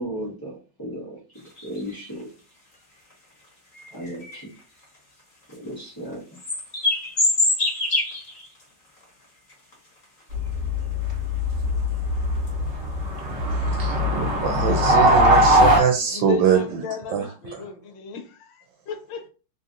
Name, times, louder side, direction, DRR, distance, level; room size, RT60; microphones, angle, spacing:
voice 1, 0.0-2.3 3.9-4.5 5.6-6.2, equal, 25° left, 0.5 m, -35 dB
sound 1, 1.4-2.2 3.1-3.2 3.7-5.2 5.5-5.7 6.1-8.6 9.0-9.1 9.5-10.3 10.8-11.4 11.7-11.8 12.3-12.7 13.2-13.3 13.6-13.7 14.1-14.3 14.7-14.9, left 2 dB, 45° left, 1.7 m, -26 dB
sound 2, 10.3-15.8, equal, 45° right, 1.0 m, -20 dB
voice 2, 13.8-16.6 17.1-17.6, right 7 dB, 85° right, 1.3 m, -23 dB
voice 3, 16.1-19.3, left 5 dB, 80° left, 1.3 m, -35 dB
3.2 x 2.6 x 2.4 m
omnidirectional pair, 2.0 m